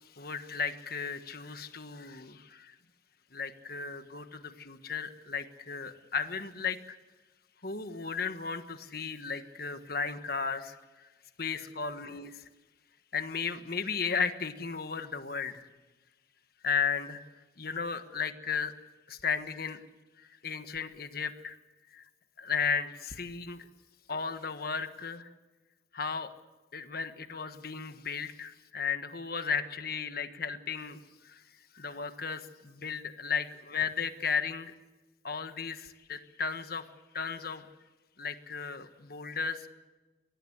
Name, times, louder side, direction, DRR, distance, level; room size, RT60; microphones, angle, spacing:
voice 1, 0.1-2.7 3.3-7.0 7.6-11.1 11.4-12.4 13.1-15.7 16.6-17.2 17.6-18.7 19.1-19.8 20.2-21.6 21.9-22.0 22.4-23.7 24.1-25.3 25.9-26.3 26.7-31.4 31.7-34.7 35.2-36.9 37.1-37.7 38.2-39.7, left 5 dB, 55° left, 9 dB, 1.4 m, -35 dB
24.0 x 18.5 x 8.0 m, 1.2 s
head